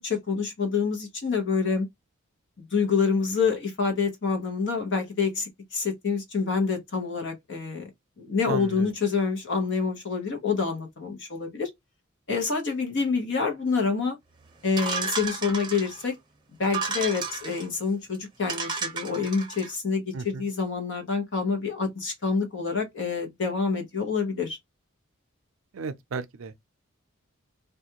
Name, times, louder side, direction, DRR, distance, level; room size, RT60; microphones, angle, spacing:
voice 1, 0.0-1.9 2.6-7.9 8.2-11.7 12.3-14.2 14.6-16.1 16.6-24.6, left 5 dB, 60° left, 0.9 m, -27 dB
voice 2, 8.5-8.9 20.1-20.4 25.7-26.5, right 4 dB, 70° right, 0.5 m, -34 dB
sound 1, 14.8-16.1 16.6-17.7 18.1-18.2 18.5-19.7, right 4 dB, 20° right, 0.7 m, -32 dB
2.4 x 2.2 x 2.8 m
head